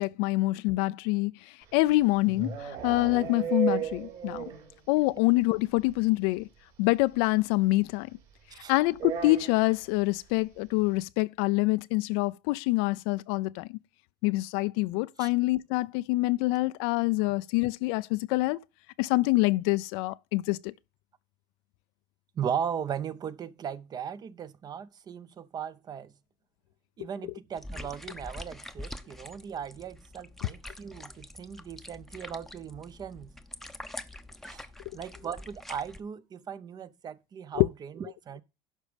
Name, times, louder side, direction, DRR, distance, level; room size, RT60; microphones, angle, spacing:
voice 1, 0.0-1.3 1.7-4.5 4.9-6.5 6.8-8.1 8.7-13.7 14.2-18.6 19.0-20.7 37.6-37.7, left 21 dB, 75° left, 0.4 m, -26 dB
sound 1, 1.7-4.8 5.0-5.1 5.4-5.5 5.8-5.9 7.1-7.2 8.9-9.8, right 8 dB, 55° right, 4.6 m, -34 dB
voice 2, 22.4-26.1 27.0-33.3 34.4-34.7 34.9-38.4, right 8 dB, 30° right, 0.7 m, -37 dB
sound 2, 27.6-36.0, left 1 dB, ahead, 0.7 m, -45 dB
11.5 x 5.2 x 5.1 m
supercardioid pair, 125°, 13 cm